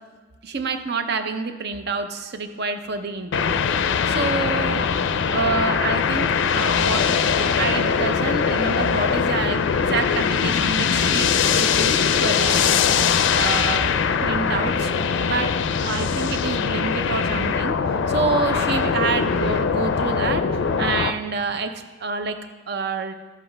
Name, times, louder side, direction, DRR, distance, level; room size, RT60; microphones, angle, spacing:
voice 1, 0.4-4.9 5.3-7.1 7.6-9.6 9.9-14.9 15.2-15.5 15.8-17.8 18.1-21.7 22.0-22.4 22.7-23.1, right 4 dB, 55° right, 8 dB, 0.6 m, -27 dB
sound 1, 3.3-21.1, left 6 dB, 60° left, 0.4 m, -21 dB
sound 2, 5.3-5.9 6.1-6.3 6.9-7.1 7.4-7.9 8.2-8.4 8.7-9.2 9.4-9.6 9.8-10.0, equal, 20° right, 1.1 m, -37 dB
12.5 x 7.6 x 3.4 m, 1.4 s
head